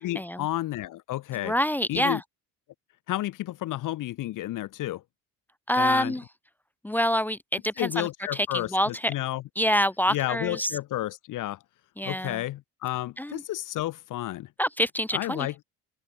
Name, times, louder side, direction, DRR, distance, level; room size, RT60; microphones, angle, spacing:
voice 1, 0.0-1.6 1.9-2.2 3.1-5.0 5.8-6.1 7.8-9.4 10.1-11.6 12.0-14.5 15.1-15.6, left 15 dB, 60° left, 1.6 m, -31 dB
voice 2, 1.4-2.2 5.7-6.2 6.8-8.1 8.5-8.9 9.6-10.7 12.0-12.4 13.2-13.4 14.6-15.5, equal, 5° left, 0.9 m, -26 dB
open air
cardioid pair, 175°, 36 cm